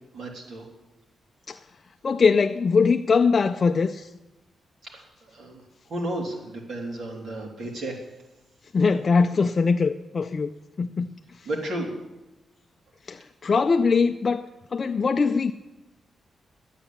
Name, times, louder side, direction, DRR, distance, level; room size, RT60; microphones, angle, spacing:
voice 1, 0.1-0.6 4.9-5.6 5.9-8.0 11.4-11.9, right 1 dB, 60° right, 3.2 m, -33 dB
voice 2, 2.0-4.1 8.7-10.5 10.8-11.2 13.1-15.5, left 5 dB, 35° left, 0.4 m, -22 dB
12.0 x 9.0 x 8.6 m
wide cardioid pair, 160°, 0 cm